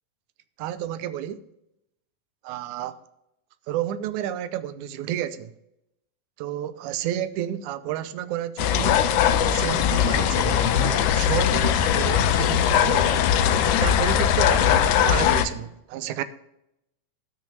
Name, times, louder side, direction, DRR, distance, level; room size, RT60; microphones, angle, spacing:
voice 1, 0.6-1.4 2.4-3.0 3.7-5.5 6.4-9.1 9.4-13.3 13.8-16.2, right 11 dB, 80° right, 2.1 m, -31 dB
sound 1, 8.6-15.5, left 9 dB, 85° left, 2.2 m, -20 dB
12.5 x 6.2 x 5.5 m
omnidirectional pair, 3.5 m